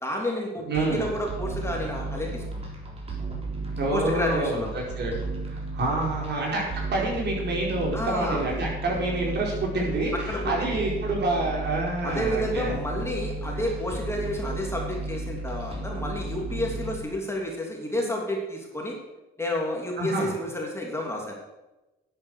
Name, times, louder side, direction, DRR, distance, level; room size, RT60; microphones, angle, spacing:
voice 1, 0.0-2.7 3.9-4.7 7.9-8.4 10.1-10.8 12.0-19.0 19.4-21.3, left 1 dB, 15° left, -1 dB, 3.0 m, -30 dB
sound 1, 0.7-17.0, right 2 dB, 30° right, 3.6 m, -34 dB
voice 2, 0.7-1.0 3.8-5.1 5.5-12.7 20.0-20.3, right 2 dB, 60° right, -2 dB, 4.9 m, -27 dB
10.5 x 8.8 x 6.6 m, 1.0 s
cardioid pair, 90°, 20 cm